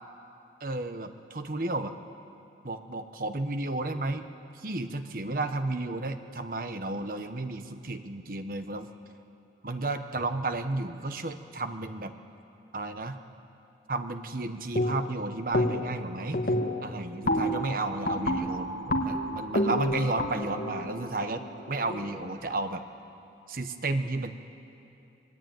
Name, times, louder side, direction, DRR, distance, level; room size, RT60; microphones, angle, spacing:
voice 1, 0.6-2.0 2.6-4.3 4.5-8.9 9.6-12.1 12.7-13.2 13.9-16.5 16.8-22.8 23.5-24.3, right 2 dB, 55° right, 8 dB, 1.2 m, -32 dB
sound 1, 14.8-15.2 15.5-16.0 16.3-22.2, left 1 dB, 55° left, 2.1 m, -29 dB
26.0 x 20.0 x 9.3 m, 2.8 s
head